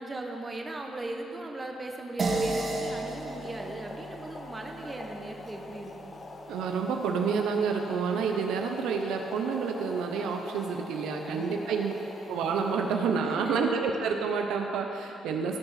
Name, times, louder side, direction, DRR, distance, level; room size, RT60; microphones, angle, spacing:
voice 1, 0.0-6.1 11.2-11.8 13.2-13.6, right 2 dB, 25° right, 2 dB, 1.3 m, -39 dB
sound 1, 2.2-6.9, right 2 dB, 45° right, 1.6 m, -34 dB
Boiling, 2.6-13.6, left 2 dB, 35° left, 1.0 m, -44 dB
voice 2, 6.5-11.9 12.3-15.6, right 5 dB, 85° right, 3 dB, 0.8 m, -29 dB
15.5 x 5.4 x 5.9 m, 2.8 s
cardioid pair, 90°, 0 cm